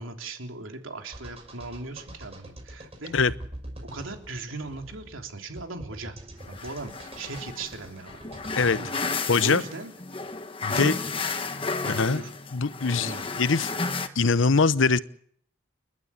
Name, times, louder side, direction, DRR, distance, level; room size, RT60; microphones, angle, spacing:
voice 1, 0.0-3.2 3.9-6.1 6.5-8.2 8.6-9.0 9.4-9.9 10.6-10.9 11.9-12.3 13.0-13.3, right 3 dB, 85° right, 4 dB, 3.3 m, -38 dB
sound 1, 1.1-8.8, right 1 dB, 30° right, 6.4 m, -44 dB
sound 2, 6.4-14.1, left 4 dB, 25° left, 1.3 m, -33 dB
voice 2, 9.3-9.6 10.6-11.0 11.8-12.2 12.5-13.1 13.4-13.7 14.1-15.0, left 4 dB, 75° left, 15 dB, 0.9 m, -22 dB
29.5 x 12.0 x 8.5 m, 0.63 s
head